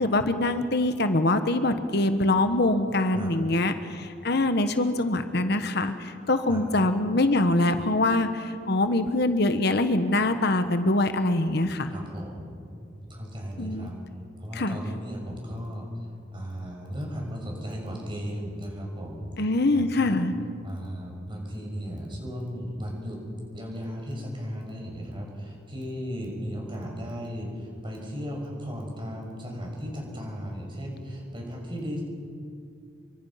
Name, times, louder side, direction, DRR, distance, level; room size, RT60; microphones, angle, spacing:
voice 1, 0.0-11.9 13.6-13.9 14.5-14.8 19.4-20.3, left 2 dB, 60° left, 9 dB, 1.2 m, -24 dB
voice 2, 11.9-14.0 14.4-15.9 16.3-20.2 20.6-23.2 23.5-32.0, equal, 25° right, 0 dB, 6.5 m, -36 dB
28.0 x 24.0 x 5.8 m, 2.4 s
head